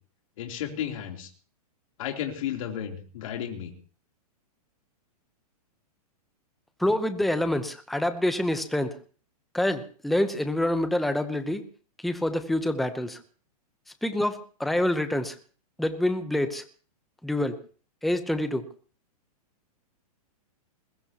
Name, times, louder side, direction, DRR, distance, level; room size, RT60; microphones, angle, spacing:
voice 1, 0.4-1.3 2.0-3.7, left 9 dB, 55° left, 3 dB, 3.4 m, -33 dB
voice 2, 6.8-8.9 9.5-11.6 12.0-13.2 14.0-15.4 15.8-16.6 17.2-17.6 18.0-18.6, left 1 dB, ahead, 9 dB, 0.8 m, -26 dB
21.0 x 20.5 x 3.0 m, 0.40 s
hypercardioid pair, 160°, 20 cm